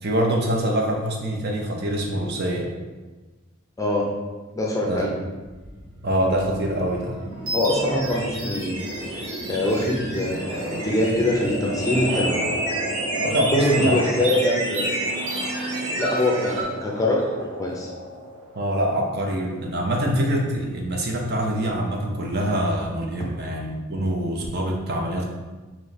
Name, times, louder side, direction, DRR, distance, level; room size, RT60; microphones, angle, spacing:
voice 1, 0.0-2.7 4.8-5.1 6.0-7.1 13.1-14.0 18.5-25.2, right 1 dB, 50° right, 0 dB, 0.6 m, -25 dB
voice 2, 3.8-4.1 4.5-5.1 7.5-8.8 9.1-12.4 13.5-15.0 16.0-17.9, left 1 dB, 15° left, -2 dB, 0.5 m, -23 dB
sound 1, 5.4-18.8, right 1 dB, 85° right, 0.8 m, -34 dB
sound 2, 6.6-16.6, right 1 dB, 65° right, 1.3 m, -30 dB
3.1 x 3.0 x 4.0 m, 1.2 s
head